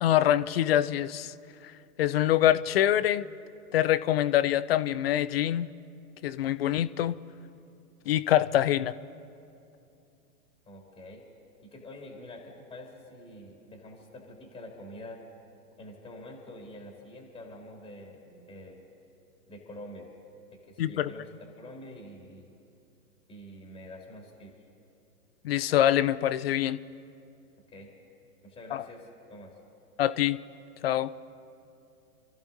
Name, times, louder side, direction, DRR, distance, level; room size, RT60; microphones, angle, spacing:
voice 1, 0.0-1.3 2.0-3.3 3.7-5.7 6.2-7.2 8.1-8.9 20.8-21.1 25.4-26.8 28.7-28.8 30.0-30.4 30.8-31.1, left 12 dB, 40° left, 16 dB, 0.5 m, -25 dB
voice 2, 10.6-11.2 11.6-15.2 15.8-18.8 19.5-20.1 20.5-21.3 21.6-22.5 23.3-24.5 27.7-27.9 28.4-29.5, left 1 dB, 10° left, -1 dB, 2.6 m, -46 dB
29.5 x 14.0 x 2.7 m, 2.7 s
figure-of-eight pair, 115°, 46 cm